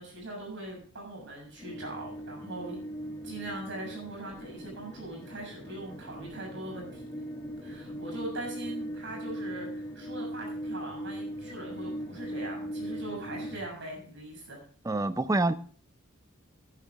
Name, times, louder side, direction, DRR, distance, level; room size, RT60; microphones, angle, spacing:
voice 1, 0.0-2.8 3.2-7.1 7.6-14.6, right 2 dB, 60° right, 0 dB, 6.6 m, -41 dB
sound 1, 1.6-13.6, equal, 15° left, 2.3 m, -39 dB
voice 2, 14.9-15.5, right 2 dB, 15° right, 13 dB, 0.5 m, -26 dB
11.5 x 11.0 x 3.5 m, 0.43 s
head